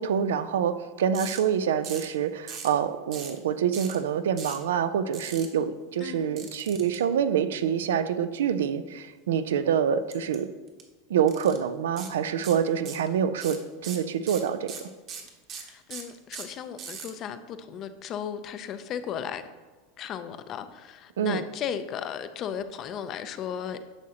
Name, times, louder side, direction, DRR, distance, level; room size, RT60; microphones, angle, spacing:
voice 1, 0.0-10.5 11.1-14.7 21.2-21.4, right 8 dB, 90° right, 11 dB, 0.5 m, -26 dB
sound 1, 1.1-1.4 1.8-2.1 2.5-2.7 3.1-3.4 3.7-4.0 4.4-4.6 5.1-5.5 6.4-7.0 10.1-10.4 10.7-10.8 11.3-11.6 12.0-12.1 12.4-13.1 13.4-17.1, right 7 dB, 45° right, 1.2 m, -39 dB
voice 2, 15.6-19.4 20.0-23.8, left 8 dB, 40° left, 11 dB, 0.5 m, -35 dB
9.8 x 6.2 x 2.9 m, 1.3 s
supercardioid pair, 125°, 0 cm